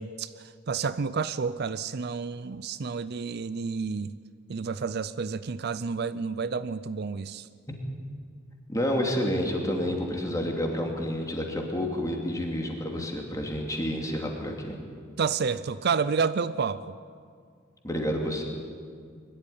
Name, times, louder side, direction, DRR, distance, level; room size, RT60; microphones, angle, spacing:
voice 1, 0.0-4.1 4.5-7.5 15.2-17.0, right 5 dB, 50° right, 0.5 m, -30 dB
voice 2, 8.7-14.7 17.8-18.4, equal, 15° left, 2.7 m, -29 dB
22.5 x 12.5 x 9.9 m
head